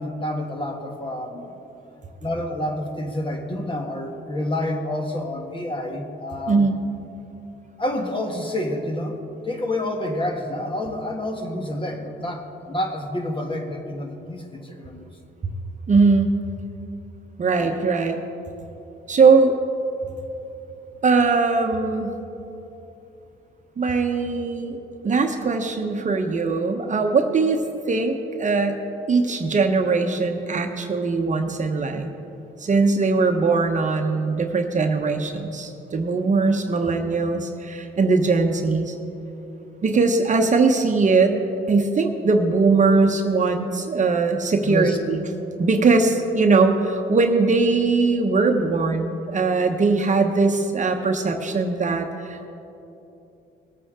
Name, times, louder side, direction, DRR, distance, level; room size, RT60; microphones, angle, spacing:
voice 1, 0.0-1.5 2.2-6.7 7.8-9.2 9.4-15.1 17.5-17.7 44.6-45.0, left 1 dB, 25° left, 3 dB, 1.6 m, -28 dB
voice 2, 6.5-6.8 15.9-16.3 17.4-18.2 19.1-19.6 21.0-22.2 23.8-24.8 25.0-28.8 29.1-32.1 32.6-38.9 39.8-41.4 41.7-45.3 45.6-52.5, right 4 dB, 40° right, 4 dB, 1.0 m, -20 dB
19.5 x 8.4 x 3.7 m, 2.9 s
cardioid pair, 90°, 20 cm